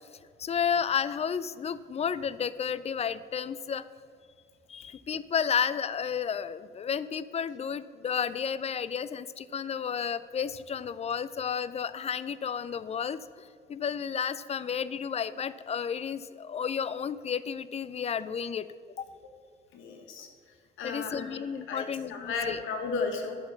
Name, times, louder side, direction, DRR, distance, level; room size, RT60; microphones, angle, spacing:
voice 1, 0.4-3.8 4.7-18.7 19.0-19.1 20.8-22.6, left 7 dB, 35° left, 16 dB, 0.4 m, -32 dB
voice 2, 19.7-21.4 21.7-23.4, left 4 dB, 85° left, 4 dB, 1.3 m, -35 dB
8.7 x 5.8 x 5.7 m, 2.3 s
cardioid pair, 90°, 20 cm